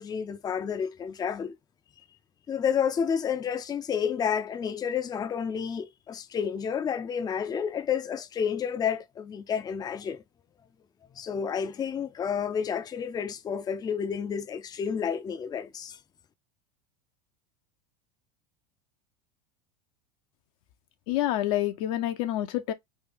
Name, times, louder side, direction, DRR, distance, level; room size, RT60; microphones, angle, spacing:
voice 1, 0.0-1.5 2.5-10.2 11.2-16.0, left 7 dB, 20° left, 0.5 m, -30 dB
voice 2, 21.1-22.7, left 13 dB, 65° left, 0.7 m, -27 dB
3.5 x 2.3 x 3.3 m
supercardioid pair, 110°, 19 cm